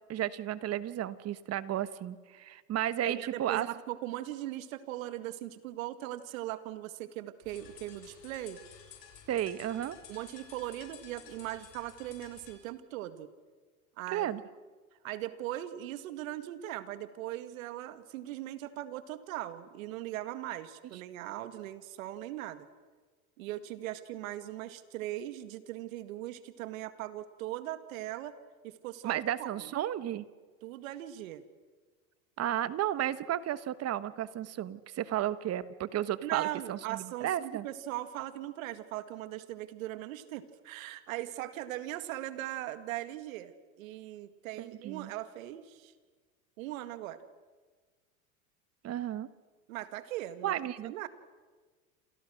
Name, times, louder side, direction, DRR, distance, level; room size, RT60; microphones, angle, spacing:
voice 1, 0.1-3.7 9.3-10.0 14.1-14.4 29.0-30.2 32.4-37.6 44.6-45.1 48.8-49.3 50.4-50.9, right 12 dB, 35° right, 14 dB, 1.3 m, -33 dB
voice 2, 3.0-8.6 10.1-13.3 14.0-14.3 15.0-22.7 23.4-28.4 28.6-29.7 30.6-31.4 36.2-45.9 46.6-47.2 49.7-50.6 50.8-51.1, right 14 dB, 75° right, 11 dB, 2.1 m, -39 dB
sound 1, 7.4-12.6, left 9 dB, 55° left, 7.1 m, -53 dB
28.0 x 28.0 x 6.4 m, 1.4 s
hypercardioid pair, 105°, 41 cm